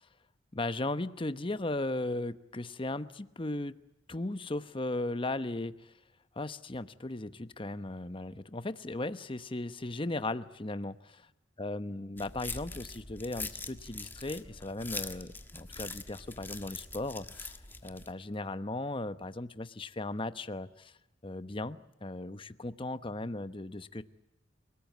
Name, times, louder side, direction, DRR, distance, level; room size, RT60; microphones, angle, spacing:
voice 1, 0.5-3.8 4.1-5.9 6.4-11.1 11.6-17.6 17.8-20.9 21.2-24.0, left 2 dB, 25° left, 12 dB, 0.9 m, -37 dB
sound 1, 12.2-18.1, left 3 dB, 10° left, 1.5 m, -43 dB
29.5 x 19.0 x 9.4 m, 0.91 s
head